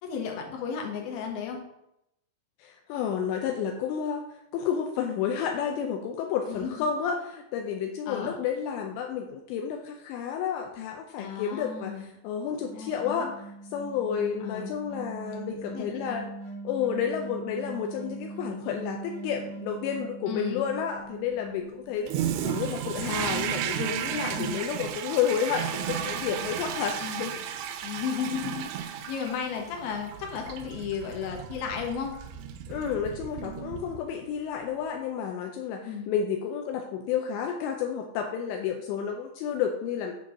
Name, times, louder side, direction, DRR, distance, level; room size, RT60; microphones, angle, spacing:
voice 1, 0.0-1.6 6.5-6.7 8.1-8.4 11.2-12.1 12.7-13.3 14.4-14.7 15.7-16.2 20.3-20.7 24.4-24.6 27.0-27.2 27.8-28.7 29.1-32.1 35.8-36.1, left 7 dB, 70° left, 1 dB, 2.5 m, -34 dB
voice 2, 2.6-4.2 4.5-16.3 16.6-27.5 32.7-40.2, left 7 dB, 85° left, 3 dB, 2.5 m, -31 dB
sound 1, 12.2-22.3, right 3 dB, 20° right, 0.9 m, -41 dB
Toilet flush, 22.1-34.4, right 9 dB, 90° right, 2.5 m, -34 dB
8.7 x 3.9 x 6.5 m, 0.82 s
omnidirectional pair, 5.8 m